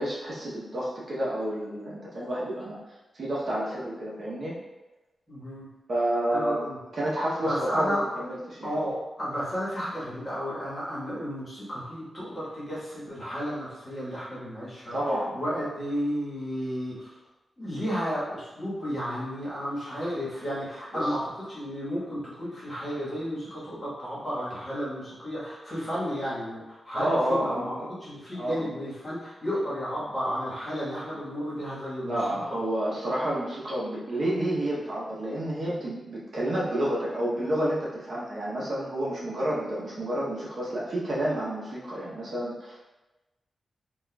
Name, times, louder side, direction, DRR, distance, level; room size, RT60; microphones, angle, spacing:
voice 1, 0.0-2.8 3.1-4.6 5.9-6.6 6.9-8.8 14.9-15.4 20.9-21.1 26.9-27.9 28.4-28.7 32.0-42.9, right 1 dB, 45° right, -6 dB, 0.7 m, -30 dB
voice 2, 5.3-5.7 6.3-6.8 7.4-8.0 8.6-14.9 15.3-17.2 17.6-27.7 28.0-32.4, equal, 25° left, -9 dB, 1.2 m, -32 dB
4.2 x 2.4 x 2.2 m, 1.1 s
wide cardioid pair, 160°, 0 cm